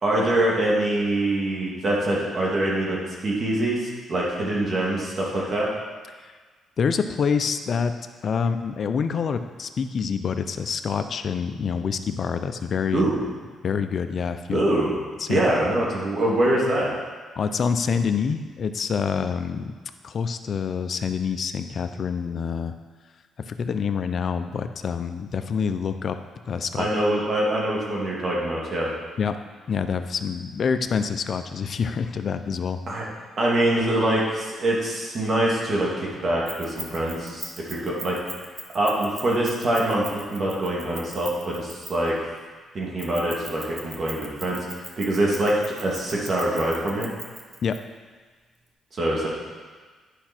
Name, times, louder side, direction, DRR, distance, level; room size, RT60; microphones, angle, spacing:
voice 1, 0.0-5.7 12.9-13.2 14.5-14.9 15.3-16.9 26.7-28.9 32.9-33.0 33.4-38.2 38.7-42.1 42.7-44.6 45.0-47.1 48.9-49.3, right 1 dB, 45° right, -4 dB, 2.4 m, -24 dB
voice 2, 6.8-7.9 8.2-13.0 13.6-14.6 15.2-15.4 17.4-19.7 20.0-22.7 23.5-26.2 26.5-26.9 29.2-29.4 29.7-32.8 47.6-47.8, left 6 dB, 50° left, 9 dB, 0.6 m, -26 dB
Keys jangling, 36.5-42.2 43.0-47.8, right 2 dB, 25° right, 1.3 m, -39 dB
10.0 x 5.8 x 4.4 m, 1.5 s
cardioid pair, 90°, 0 cm